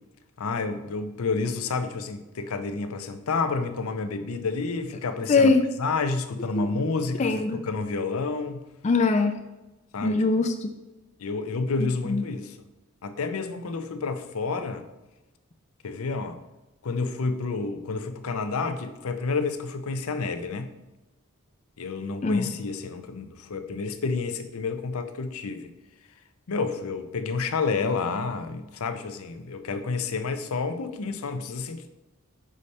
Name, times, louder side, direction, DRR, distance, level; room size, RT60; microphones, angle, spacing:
voice 1, 0.4-5.5 5.8-8.6 9.9-10.2 11.2-12.6 13.0-14.9 15.8-16.4 16.8-20.7 21.8-25.7 26.5-31.9, left 4 dB, 75° left, 9 dB, 0.6 m, -29 dB
voice 2, 5.3-5.7 6.6-6.7 7.2-7.6 8.8-9.4 10.0-10.7 12.1-12.2 22.2-22.5, left 3 dB, 30° left, 6 dB, 0.3 m, -21 dB
5.4 x 4.9 x 4.2 m, 1.0 s
head